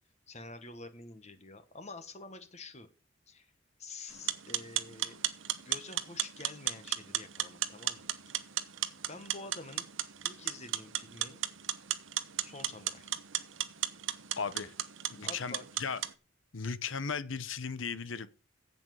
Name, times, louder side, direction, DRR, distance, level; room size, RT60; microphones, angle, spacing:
voice 1, 0.3-2.9 3.3-3.5 3.8-5.2 5.6-8.1 8.3-8.4 9.1-9.9 10.2-11.4 12.4-13.1 15.2-15.7, left 3 dB, 35° left, 1.3 m, -48 dB
sound 1, 4.1-16.1, right 12 dB, 80° right, 0.9 m, -36 dB
voice 2, 14.4-14.7 15.1-16.0 16.5-18.3, left 5 dB, 75° left, 0.9 m, -36 dB
8.0 x 7.9 x 7.6 m
head